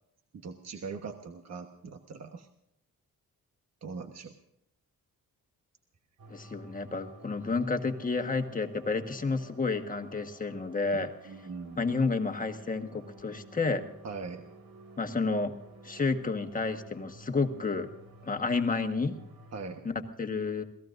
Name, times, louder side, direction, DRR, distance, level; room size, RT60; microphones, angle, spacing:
voice 1, 0.3-2.5 3.8-4.3 11.0-11.9 14.0-14.4 19.5-19.9, right 4 dB, 50° right, 5 dB, 1.3 m, -41 dB
sound 1, 6.2-19.8, right 1 dB, 90° right, 3.2 m, -52 dB
voice 2, 6.3-11.1 11.8-13.8 15.0-15.5 15.8-17.9 18.3-19.1 19.8-20.6, left 4 dB, 25° left, 6 dB, 1.4 m, -30 dB
28.0 x 18.5 x 2.6 m, 0.77 s
wide cardioid pair, 150°, 34 cm